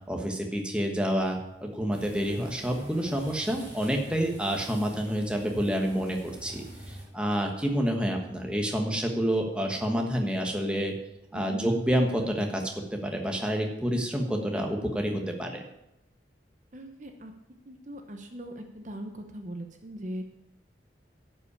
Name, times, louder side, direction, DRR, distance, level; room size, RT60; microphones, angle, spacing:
voice 1, 0.1-6.2 6.4-10.9 11.3-12.6 12.9-15.6, equal, 5° right, 1 dB, 1.3 m, -28 dB
sound 1, 1.9-7.0, right 1 dB, 25° right, 5.2 m, -46 dB
voice 2, 11.3-11.7 16.7-17.3 17.7-20.3, equal, 40° right, 5 dB, 0.9 m, -40 dB
11.5 x 5.6 x 8.5 m, 0.86 s
head